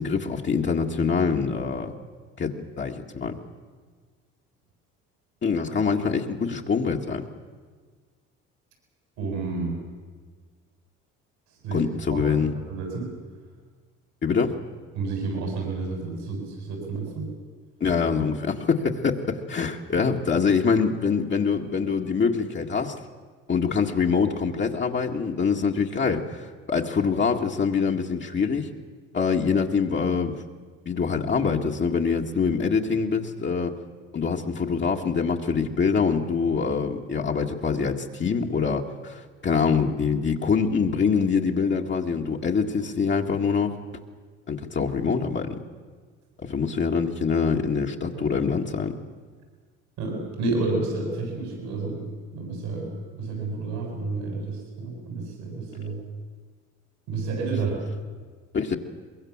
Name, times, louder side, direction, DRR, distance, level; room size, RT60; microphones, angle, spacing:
voice 1, 0.0-1.9 2.4-3.4 5.4-7.3 11.7-12.5 14.2-14.6 17.8-23.0 23.5-28.7 29.1-30.4 30.9-33.8 34.1-43.7 44.5-45.6 46.4-48.9 58.5-58.8, left 5 dB, 40° left, 0 dB, 1.9 m, -24 dB
voice 2, 9.2-9.7 11.6-11.8 12.1-13.1 14.9-17.3 48.1-48.4 50.0-52.1 52.3-56.0 57.1-57.8, right 3 dB, 85° right, 0 dB, 7.6 m, -30 dB
23.5 x 22.0 x 7.4 m, 1.5 s
supercardioid pair, 80°, 29 cm